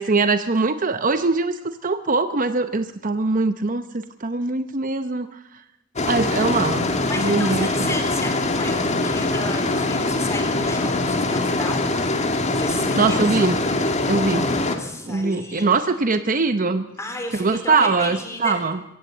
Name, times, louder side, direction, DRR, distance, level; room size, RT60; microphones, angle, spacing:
voice 1, 0.0-5.3 6.0-6.9 7.1-8.0 13.0-13.6 14.1-14.5 15.1-16.8 17.3-18.8, right 3 dB, 40° right, 10 dB, 0.8 m, -22 dB
sound 1, 6.0-14.8, left 2 dB, 35° left, 1.9 m, -23 dB
voice 2, 7.0-11.8 12.5-13.4 14.2-15.7 17.0-18.6, left 2 dB, 15° left, 4 dB, 4.1 m, -33 dB
22.0 x 16.5 x 8.1 m, 0.87 s
head